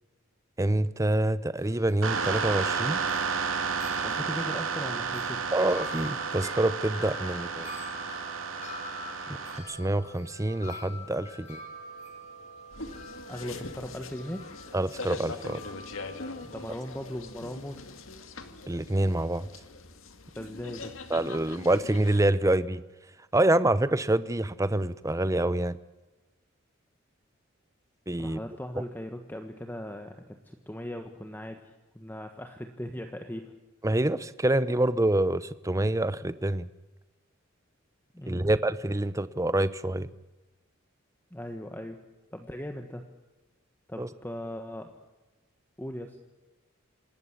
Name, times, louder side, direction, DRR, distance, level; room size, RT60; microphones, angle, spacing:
voice 1, 0.6-3.0 5.5-7.7 9.3-11.6 14.7-15.6 18.7-19.5 21.1-22.8 23.3-25.8 28.1-28.4 33.8-36.7 38.3-40.1 44.0-44.1, right 1 dB, 15° right, 15 dB, 0.8 m, -26 dB
Wind chime, 1.6-18.0, left 1 dB, 35° left, 5.2 m, -46 dB
sound 1, 2.0-9.6, right 5 dB, 80° right, 2.7 m, -32 dB
voice 2, 4.0-5.4 13.3-14.5 16.4-17.9 20.4-20.9 28.2-33.5 38.1-38.6 41.3-42.0 42.3-43.0 43.9-44.9 45.8-46.2, equal, 10° left, 5 dB, 1.4 m, -38 dB
sound 2, 12.7-22.2, left 3 dB, 80° left, 2.1 m, -42 dB
27.0 x 13.5 x 9.7 m, 1.1 s
head